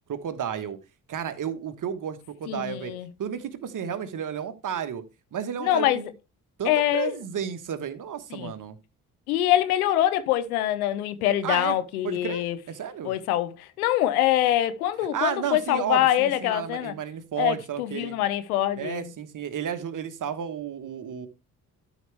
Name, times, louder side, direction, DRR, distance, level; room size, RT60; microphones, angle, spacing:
voice 1, 0.1-0.8 1.1-2.9 3.2-5.0 5.3-6.1 6.6-8.8 11.4-11.8 12.0-13.1 15.1-18.2 18.8-21.3, right 8 dB, 45° right, 1.4 m, -32 dB
voice 2, 2.5-3.1 5.6-6.0 6.7-7.1 8.3-8.5 9.3-12.6 13.0-16.9 17.4-19.1, left 13 dB, 80° left, 0.9 m, -24 dB
12.5 x 5.0 x 3.4 m
figure-of-eight pair, 45°, 44 cm